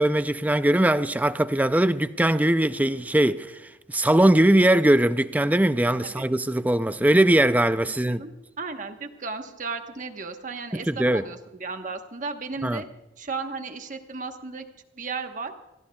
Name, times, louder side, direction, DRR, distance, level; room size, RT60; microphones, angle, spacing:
voice 1, 0.0-3.5 3.9-8.2 10.7-11.2 12.6-12.8, right 1 dB, 10° right, 0.4 m, -21 dB
voice 2, 7.8-12.9 13.2-14.6 14.9-15.5, right 4 dB, 40° right, 1.1 m, -35 dB
25.5 x 17.5 x 2.3 m
head